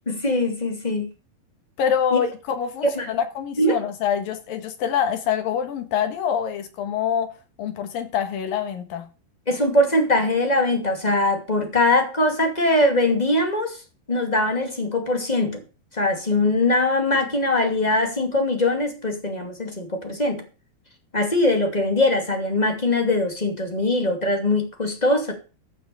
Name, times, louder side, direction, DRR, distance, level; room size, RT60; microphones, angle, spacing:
voice 1, 0.1-1.1 2.1-2.2 3.0-3.1 3.6-3.8 9.5-13.8 14.1-15.6 15.9-20.4 21.1-25.3, left 2 dB, 15° left, 1.9 m, -21 dB
voice 2, 1.8-7.3 7.6-9.1, left 8 dB, 75° left, 3.4 m, -25 dB
14.5 x 6.0 x 7.0 m
omnidirectional pair, 4.2 m